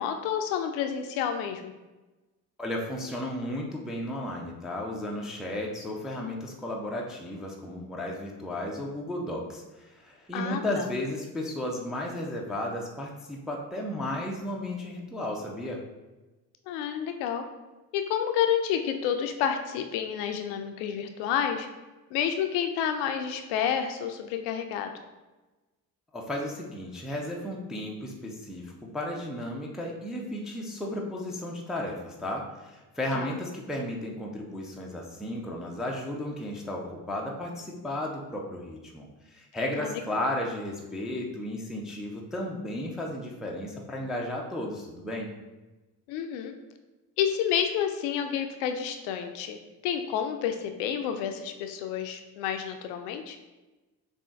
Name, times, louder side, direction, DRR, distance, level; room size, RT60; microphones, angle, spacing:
voice 1, 0.0-1.7 10.3-10.8 16.7-17.4 17.9-21.7 22.1-24.9 33.1-33.3 39.7-40.0 46.1-46.5 47.2-49.6 49.8-53.4, left 8 dB, 55° left, 6 dB, 0.5 m, -29 dB
voice 2, 2.6-15.8 26.1-45.3, left 1 dB, ahead, -1 dB, 0.4 m, -34 dB
6.8 x 2.4 x 2.4 m, 1.1 s
figure-of-eight pair, 45°, 49 cm